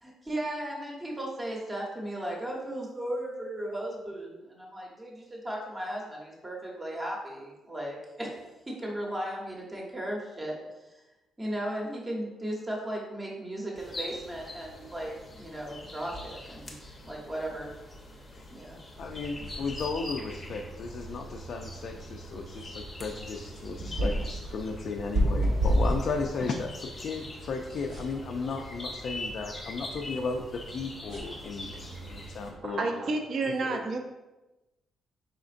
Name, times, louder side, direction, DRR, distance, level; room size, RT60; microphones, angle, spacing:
voice 1, 0.0-10.5 11.4-16.7 17.0-17.7 18.5-18.8, right 1 dB, 15° right, -2 dB, 0.9 m, -36 dB
sound 1, 13.8-32.5, left 1 dB, 20° left, 0.7 m, -44 dB
voice 2, 19.0-32.8 33.7-33.8, left 4 dB, 55° left, 2 dB, 0.3 m, -35 dB
sound 2, 19.0-32.6, equal, 70° right, 1.2 m, -34 dB
voice 3, 32.6-34.0, right 3 dB, 50° right, 3 dB, 0.6 m, -30 dB
4.9 x 3.7 x 2.5 m, 1.0 s
cardioid pair, 140°, 0 cm